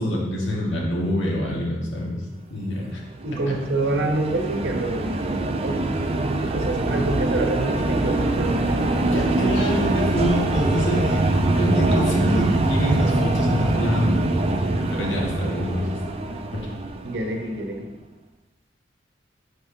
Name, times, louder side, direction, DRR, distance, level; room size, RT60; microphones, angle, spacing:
voice 1, 0.0-2.2 2.5-3.0 9.1-11.2 11.5-14.2 14.5-14.6 14.9-15.9 16.5-16.6, equal, 90° left, -3 dB, 1.5 m, -25 dB
sound 1, 3.1-17.6, right 2 dB, 30° right, 0.4 m, -23 dB
voice 2, 3.2-5.8 6.5-9.2 17.0-17.9, right 2 dB, 60° right, 3 dB, 0.9 m, -27 dB
8.2 x 4.5 x 2.8 m, 1.1 s
head